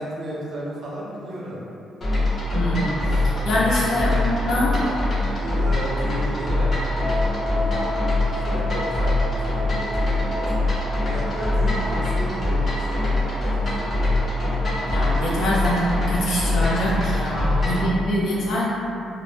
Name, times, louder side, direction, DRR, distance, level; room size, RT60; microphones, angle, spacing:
voice 1, 0.0-1.6 3.9-5.0 5.4-10.7 11.1-14.4 17.5-18.0, equal, 60° right, -6 dB, 0.6 m, -34 dB
sound 1, 2.0-17.9, left 1 dB, 45° left, 0.8 m, -23 dB
voice 2, 2.5-4.7 14.9-18.8, left 1 dB, 75° left, -7 dB, 0.6 m, -24 dB
Wind instrument woodwind instrument, 7.0-11.7, left 2 dB, 10° left, 0.5 m, -32 dB
2.0 x 2.0 x 3.1 m, 2.7 s
cardioid pair, 90°, 0 cm